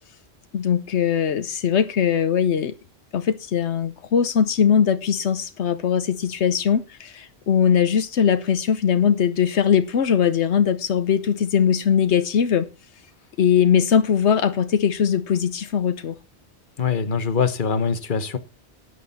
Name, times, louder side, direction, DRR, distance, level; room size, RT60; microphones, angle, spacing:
voice 1, 0.5-2.7 3.1-12.7 13.4-16.1, left 8 dB, 85° left, 1.1 m, -20 dB
voice 2, 16.8-18.4, left 6 dB, 50° left, 1.3 m, -23 dB
13.5 x 9.6 x 4.2 m
omnidirectional pair, 1.1 m